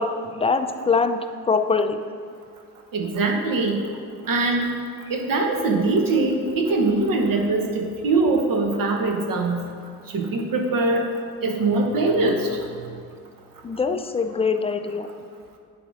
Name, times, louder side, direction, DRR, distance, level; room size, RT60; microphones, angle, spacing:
voice 1, 0.0-2.0 13.6-15.1, left 4 dB, 15° left, 7 dB, 0.5 m, -23 dB
voice 2, 2.9-3.8 4.3-4.7 5.1-9.6 10.1-11.0 11.4-12.6, right 3 dB, 50° right, 3 dB, 1.2 m, -22 dB
9.9 x 3.6 x 5.1 m, 2.2 s
hypercardioid pair, 45°, 43 cm